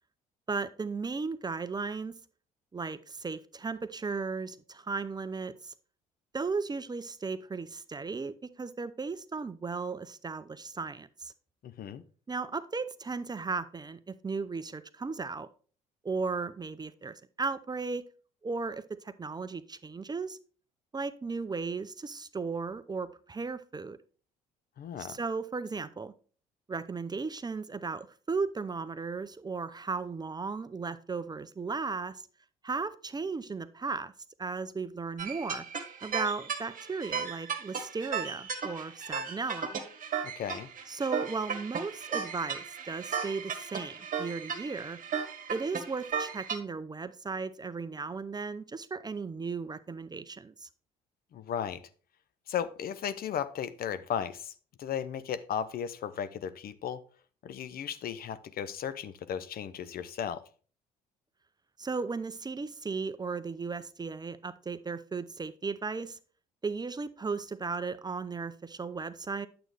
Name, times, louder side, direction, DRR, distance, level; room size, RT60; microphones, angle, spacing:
voice 1, 0.5-2.1 2.7-5.7 6.3-11.3 12.3-15.5 16.0-18.0 18.4-20.4 20.9-24.0 25.0-26.1 26.7-32.3 32.6-34.1 34.4-35.7 36.0-39.7 40.9-45.0 45.5-50.7 61.8-66.2 66.6-69.5, right 4 dB, 20° right, 0.6 m, -36 dB
voice 2, 11.6-12.0 24.8-25.2 40.2-40.7 51.3-51.8 52.5-54.5 54.8-57.0 57.4-60.4, left 8 dB, 50° left, 0.8 m, -35 dB
sound 1, 35.2-46.6, right 6 dB, 45° right, 1.5 m, -36 dB
9.0 x 7.8 x 3.4 m
hypercardioid pair, 60°, 19 cm